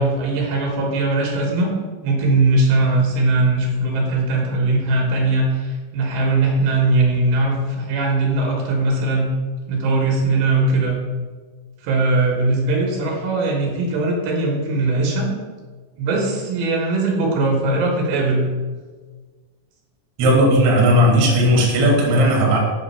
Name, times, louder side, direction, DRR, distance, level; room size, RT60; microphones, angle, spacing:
voice 1, 0.0-1.7 2.0-9.3 9.7-11.0 11.8-15.3 16.0-18.5, right 2 dB, 75° right, -1 dB, 3.1 m, -20 dB
voice 2, 20.2-22.6, equal, 50° right, -2 dB, 2.0 m, -15 dB
8.2 x 3.7 x 5.5 m, 1.4 s
omnidirectional pair, 4.6 m